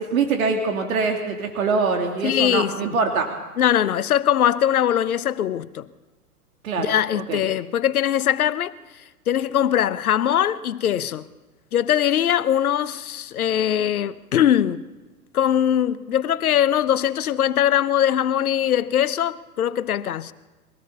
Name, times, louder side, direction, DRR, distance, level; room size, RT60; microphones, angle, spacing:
voice 1, 0.0-3.3 6.6-6.9 7.3-7.4, right 4 dB, 65° right, 2.9 m, -23 dB
voice 2, 2.2-3.0 3.6-5.9 6.8-8.7 9.3-11.3 11.7-14.8 15.3-20.3, left 10 dB, 70° left, 1.0 m, -21 dB
23.5 x 17.5 x 7.0 m
hypercardioid pair, 110°, 45 cm